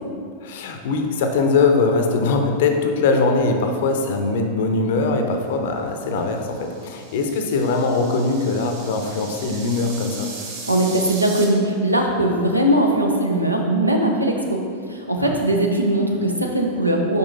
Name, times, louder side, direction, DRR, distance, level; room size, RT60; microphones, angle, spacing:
voice 1, 0.4-10.3 15.2-15.4, left 3 dB, 55° left, 4 dB, 0.6 m, -21 dB
sound 1, 6.3-11.4, right 3 dB, 50° right, 1.1 m, -38 dB
voice 2, 10.7-14.6 14.9-17.2, right 1 dB, 85° right, 1 dB, 0.7 m, -20 dB
5.4 x 5.0 x 4.0 m, 2.3 s
figure-of-eight pair, 90°, 0 cm